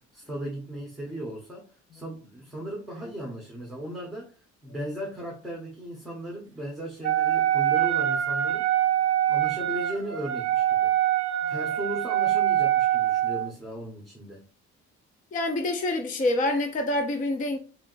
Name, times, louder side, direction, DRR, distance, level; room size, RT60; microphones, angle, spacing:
voice 1, 0.0-8.7 9.3-11.0 11.5-14.5, right 1 dB, ahead, 1.1 m, -37 dB
Wind instrument woodwind instrument, 7.0-13.5, right 12 dB, 45° right, 0.8 m, -24 dB
voice 2, 15.3-17.6, left 2 dB, 25° left, 0.5 m, -26 dB
4.0 x 3.4 x 2.5 m
cardioid pair, 145°, 29 cm